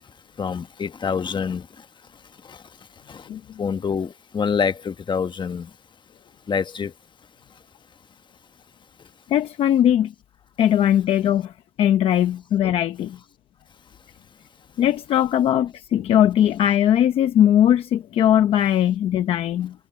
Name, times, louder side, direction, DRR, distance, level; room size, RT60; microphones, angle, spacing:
voice 1, 0.4-1.6 3.6-5.7 6.5-6.9, left 6 dB, 55° left, 1.3 m, -25 dB
voice 2, 9.3-10.1 10.6-11.5 11.8-13.2 14.8-19.7, left 11 dB, 85° left, 1.0 m, -19 dB
supercardioid pair, 45°, 9 cm